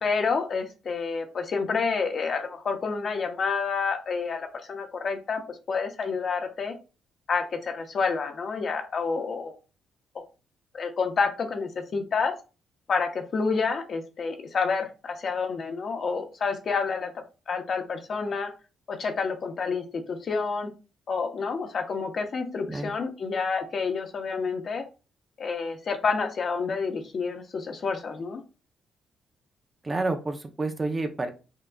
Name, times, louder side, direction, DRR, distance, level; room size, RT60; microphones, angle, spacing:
voice 1, 0.0-6.7 7.3-9.6 10.1-10.2 10.7-12.3 12.9-17.1 17.5-18.5 18.9-20.7 21.1-24.8 25.4-28.4, left 5 dB, 50° left, 4 dB, 0.9 m, -29 dB
voice 2, 29.8-31.3, right 2 dB, 25° right, 6 dB, 0.6 m, -29 dB
5.8 x 2.4 x 2.3 m, 0.32 s
cardioid pair, 90°, 0 cm